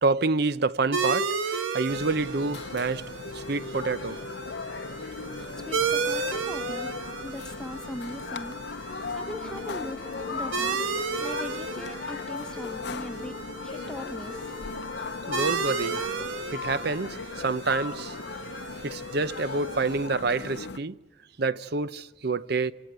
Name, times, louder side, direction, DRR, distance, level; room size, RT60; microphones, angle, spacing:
voice 1, 0.0-3.0 3.3-4.2 15.3-16.0 16.5-18.2 18.8-21.0 21.4-22.7, right 3 dB, 55° right, 0.7 m, -28 dB
sound 1, 0.9-20.1, right 5 dB, 90° right, 1.5 m, -34 dB
sound 2, 1.9-20.8, left 4 dB, 60° left, 0.7 m, -37 dB
voice 2, 5.1-8.5 9.1-10.8 11.2-14.5, equal, 5° left, 1.0 m, -40 dB
Dishes pots and pans, 9.1-15.8, left 5 dB, 25° right, 7.2 m, -45 dB
27.5 x 18.5 x 8.1 m
head